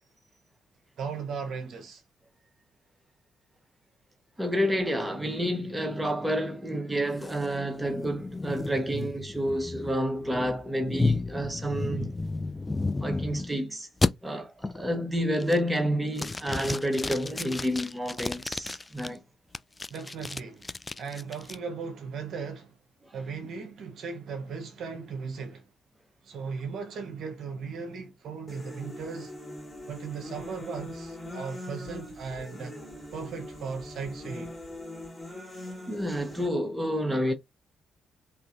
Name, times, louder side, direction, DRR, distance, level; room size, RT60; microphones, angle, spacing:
voice 1, 1.0-2.0 19.9-20.7 21.0-22.8 23.1-25.7 26.2-29.3 29.9-32.8 33.1-34.5, right 5 dB, 60° right, 0.7 m, -37 dB
voice 2, 4.4-12.1 13.0-13.9 14.2-19.2 35.9-37.3, equal, 15° right, 1.0 m, -29 dB
sound 1, 7.2-13.5 14.0-14.1 14.6-15.0 15.4-15.8 16.2-19.1 19.5-21.6, left 3 dB, 25° left, 0.3 m, -32 dB
sound 2, 28.5-36.5, left 1 dB, 10° left, 2.1 m, -42 dB
3.7 x 2.8 x 2.5 m
hypercardioid pair, 45°, 0 cm